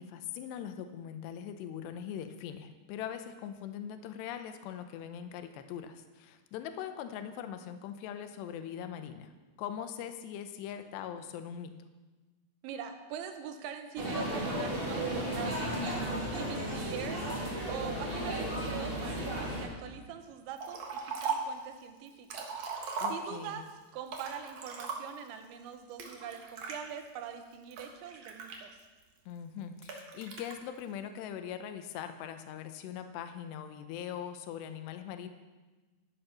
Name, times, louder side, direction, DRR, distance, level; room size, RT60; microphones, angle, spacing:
voice 1, 0.0-9.3 9.6-11.7 23.0-23.6 29.3-35.3, left 9 dB, 80° left, 8 dB, 2.8 m, -41 dB
voice 2, 12.6-15.7 16.3-17.3 17.7-22.5 23.1-28.8, right 8 dB, 80° right, 7 dB, 3.3 m, -43 dB
sound 1, 14.0-19.6, right 1 dB, 30° right, 0.9 m, -34 dB
Liquid, 20.6-21.6 22.1-23.6 24.1-25.3 26.0-26.8 27.4-29.0 29.8-30.5, right 6 dB, 60° right, 2.0 m, -38 dB
13.5 x 10.0 x 5.9 m, 1.3 s
omnidirectional pair, 5.4 m